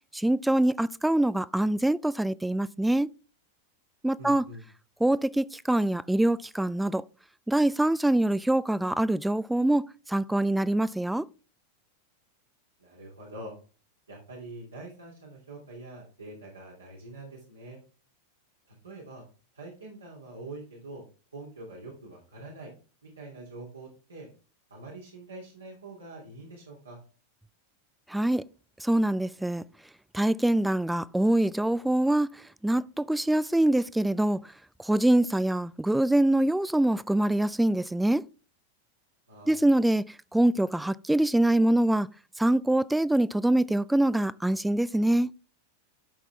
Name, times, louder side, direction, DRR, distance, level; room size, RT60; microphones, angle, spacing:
voice 1, 0.1-3.1 4.0-4.5 5.0-7.0 7.5-11.2 28.1-28.4 28.8-29.6 30.1-32.3 32.6-34.4 34.8-38.2 39.5-40.0 40.3-42.1 42.4-45.3, right 1 dB, 5° right, 0.3 m, -24 dB
voice 2, 4.2-4.6 12.8-13.5 14.1-17.8 18.8-19.3 19.5-21.0 21.3-22.7 23.0-24.3 24.7-27.0 39.3-39.7, right 2 dB, 75° right, 2.6 m, -44 dB
12.0 x 5.8 x 3.4 m
figure-of-eight pair, 90°, 0 cm